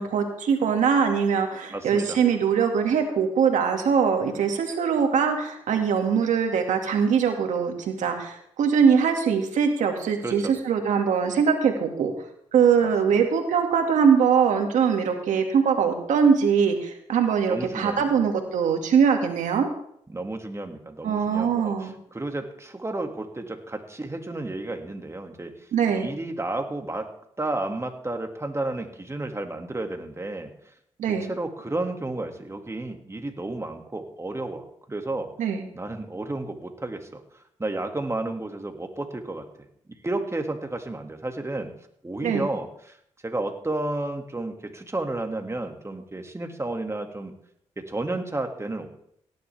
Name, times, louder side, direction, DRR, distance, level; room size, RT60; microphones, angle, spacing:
voice 1, 0.0-12.1 12.5-19.7 21.0-21.9 25.7-26.1 31.0-31.3 35.4-35.7 42.2-42.5, right 6 dB, 85° right, 4 dB, 2.1 m, -22 dB
voice 2, 1.7-2.2 10.2-10.5 12.8-12.9 17.5-18.2 20.1-25.5 25.9-27.1 27.4-30.5 31.1-35.3 35.7-39.5 40.0-41.7 42.0-43.0 43.2-47.3 47.8-48.9, right 2 dB, 20° right, 5 dB, 2.1 m, -32 dB
17.5 x 11.0 x 3.4 m, 0.70 s
cardioid pair, 55°, 12 cm